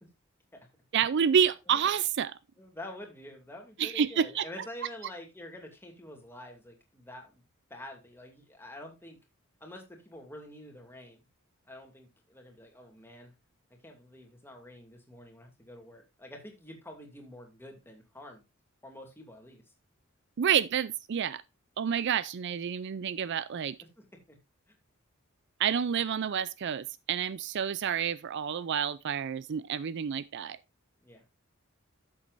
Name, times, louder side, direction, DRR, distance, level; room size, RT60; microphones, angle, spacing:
voice 1, 0.9-2.4 3.8-4.5 20.4-21.4 21.8-23.8 25.6-30.6, right 8 dB, 55° right, 0.4 m, -29 dB
voice 2, 2.6-9.2 9.6-11.2 11.7-13.3 13.8-18.4 18.8-19.6 24.0-24.4 31.0-31.2, left 1 dB, 10° left, 2.5 m, -47 dB
12.5 x 7.4 x 2.6 m
head